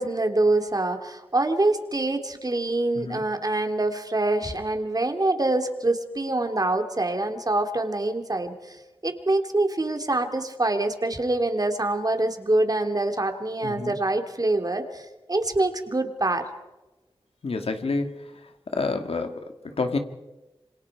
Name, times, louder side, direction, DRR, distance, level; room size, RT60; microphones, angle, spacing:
voice 1, 0.0-8.8 9.0-16.5, right 2 dB, 40° right, 6 dB, 2.7 m, -25 dB
voice 2, 13.6-14.0 17.4-18.1 18.7-20.0, left 3 dB, 80° left, 6 dB, 2.1 m, -28 dB
27.0 x 26.0 x 4.8 m, 1.1 s
wide cardioid pair, 65°, 10 cm